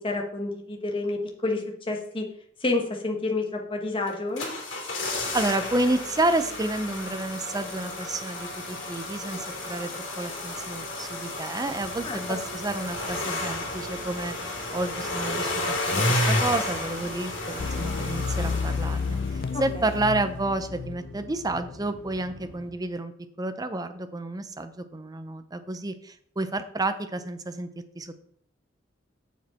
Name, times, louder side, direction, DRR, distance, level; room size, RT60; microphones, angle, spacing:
voice 1, 0.0-2.2 2.6-4.5 12.0-12.4, left 2 dB, 30° left, 1 dB, 1.3 m, -29 dB
sound 1, 4.1-19.6 19.8-19.9, left 2 dB, 90° left, 2.4 m, -32 dB
voice 2, 5.3-23.1 23.4-27.7 28.0-28.1, right 2 dB, 20° right, 10 dB, 0.6 m, -30 dB
sound 2, 11.6-22.7, equal, 70° right, 2.1 m, -47 dB
sound 3, 17.6-22.0 22.3-22.5, left 5 dB, 50° left, 0.4 m, -31 dB
7.3 x 6.4 x 4.3 m, 0.65 s
head